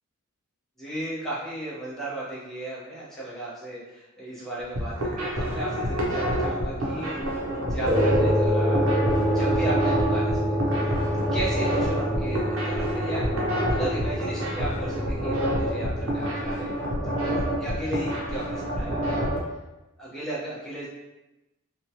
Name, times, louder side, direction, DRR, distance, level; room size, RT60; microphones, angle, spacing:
voice 1, 0.8-7.2 7.6-8.9 9.3-13.3 13.7-19.3 20.0-20.9, right 1 dB, ahead, -9 dB, 0.8 m, -35 dB
sound 1, 4.6-19.4, equal, 85° right, 0.7 m, -28 dB
sound 2, 7.9-16.6, equal, 55° right, 1.1 m, -26 dB
2.9 x 2.3 x 2.8 m, 1.0 s
head